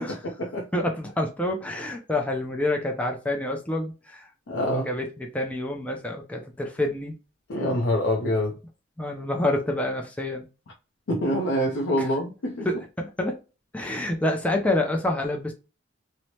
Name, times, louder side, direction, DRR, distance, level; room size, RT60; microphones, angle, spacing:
voice 1, 0.0-0.6 4.5-4.9 7.5-8.5 11.1-12.7, equal, 70° left, 0.5 m, -25 dB
voice 2, 0.7-4.3 4.6-7.2 9.0-10.5 12.0-12.2 12.6-13.4 13.7-15.5, left 1 dB, 5° left, 0.4 m, -28 dB
3.1 x 2.0 x 2.7 m
head